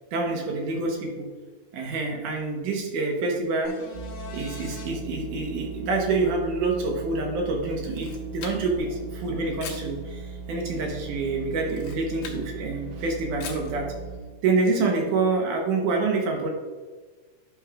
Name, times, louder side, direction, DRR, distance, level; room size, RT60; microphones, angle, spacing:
voice 1, 0.1-1.3 1.7-3.7 4.3-13.9 14.4-16.5, right 3 dB, 75° right, 1 dB, 2.5 m, -27 dB
sound 1, 3.6-4.9 8.8-8.9, left 5 dB, 70° left, 2.6 m, -41 dB
sound 2, 3.9-14.2, right 4 dB, 90° right, 2.3 m, -39 dB
Camera, 7.7-8.9 9.6-9.9 11.6-12.5 13.4-13.7, left 7 dB, 85° left, 2.7 m, -41 dB
10.5 x 6.3 x 2.4 m, 1.4 s
omnidirectional pair, 3.8 m